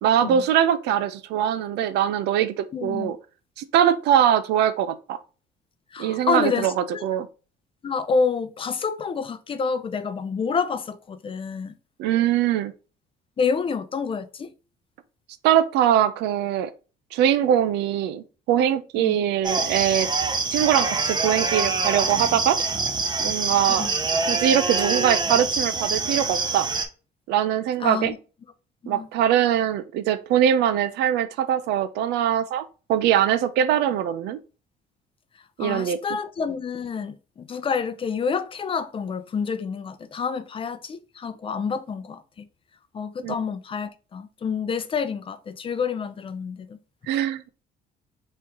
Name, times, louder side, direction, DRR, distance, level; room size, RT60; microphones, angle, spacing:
voice 1, 0.0-3.2 3.6-5.2 6.0-7.3 12.0-12.7 15.4-16.7 17.1-20.1 20.5-22.6 23.2-23.9 24.3-26.7 27.3-28.1 28.9-34.4 35.6-36.0 43.2-43.3 47.1-47.5, right 10 dB, 85° right, 0.6 m, -22 dB
voice 2, 2.7-3.1 5.9-7.1 7.8-11.8 13.4-14.5 19.0-19.2 23.8-23.9 27.8-28.2 28.8-29.1 35.6-42.4 42.9-46.8, left 5 dB, 30° left, 0.5 m, -28 dB
sound 1, 19.4-26.8, right 4 dB, 25° right, 0.8 m, -25 dB
4.3 x 3.2 x 3.6 m
cardioid pair, 110°, 17 cm